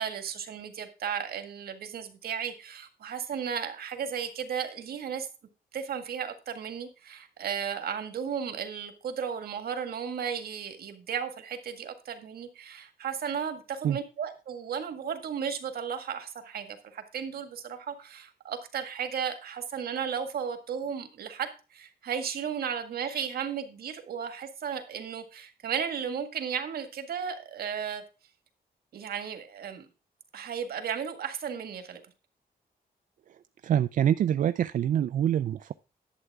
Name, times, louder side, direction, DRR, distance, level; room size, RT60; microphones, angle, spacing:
voice 1, 0.0-5.3 5.7-28.0 28.9-29.9 30.3-32.0, right 7 dB, 75° right, 7 dB, 1.8 m, -34 dB
voice 2, 33.6-35.7, right 10 dB, 55° right, 12 dB, 0.4 m, -25 dB
11.0 x 8.0 x 3.5 m, 0.31 s
wide cardioid pair, 170°, 16 cm